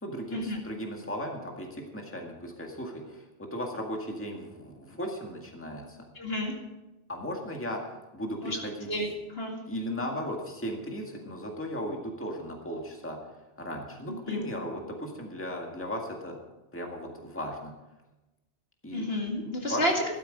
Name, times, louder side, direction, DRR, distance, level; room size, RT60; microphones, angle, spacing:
voice 1, 0.0-6.1 7.1-8.9 9.7-13.2 13.6-16.4 16.7-17.7 18.8-19.1 19.4-19.8, equal, 10° left, 1 dB, 1.9 m, -36 dB
voice 2, 6.2-6.5 8.4-8.6 8.9-9.5 14.3-14.4 18.9-19.9, left 1 dB, 60° left, 0 dB, 2.5 m, -30 dB
14.0 x 12.5 x 5.2 m, 1.0 s
omnidirectional pair, 1.2 m